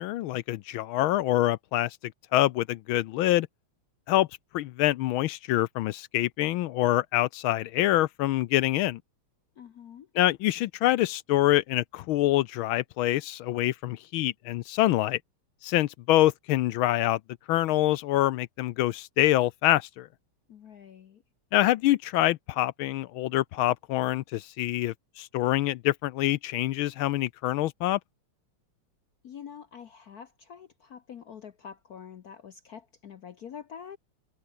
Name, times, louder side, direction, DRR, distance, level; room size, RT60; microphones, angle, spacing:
voice 1, 0.0-2.0 2.3-3.5 4.1-4.3 4.5-9.0 10.1-15.2 15.6-17.2 17.5-20.1 21.5-28.0, left 15 dB, 80° left, 1.4 m, -25 dB
voice 2, 9.6-10.1 20.5-21.2 29.2-34.0, left 8 dB, 55° left, 1.2 m, -46 dB
omnidirectional pair, 2.4 m